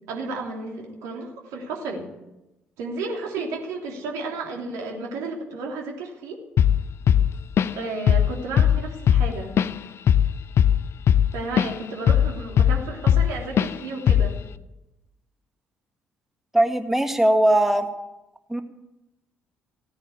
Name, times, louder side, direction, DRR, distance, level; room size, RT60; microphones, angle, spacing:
voice 1, 0.1-2.1 2.8-6.4 7.7-9.5 11.3-14.4, right 3 dB, 65° right, 0 dB, 3.3 m, -32 dB
Drum kit / Drum, 6.6-6.8 7.1-7.8 8.1-8.3 8.6-11.7 12.1-13.3 13.6-13.7 14.1-14.4, left 9 dB, 50° left, 0.6 m, -18 dB
voice 2, 16.5-17.9 18.5-18.6, right 1 dB, 5° right, 7 dB, 1.9 m, -19 dB
16.5 x 10.0 x 8.5 m, 0.96 s
figure-of-eight pair, 45°, 6 cm